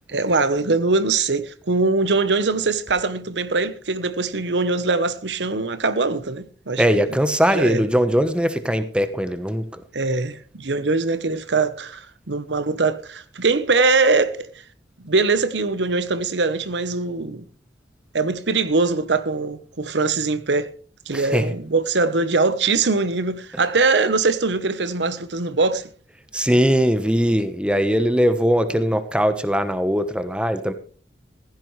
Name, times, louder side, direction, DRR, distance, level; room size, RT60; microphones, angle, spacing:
voice 1, 0.1-7.0 7.5-7.9 9.9-14.5 15.0-17.4 18.1-20.7 21.1-25.9, right 3 dB, 85° right, 1.0 m, -22 dB
voice 2, 6.8-9.8 21.1-21.5 26.3-30.7, equal, 5° right, 1.1 m, -20 dB
16.0 x 15.0 x 3.2 m
head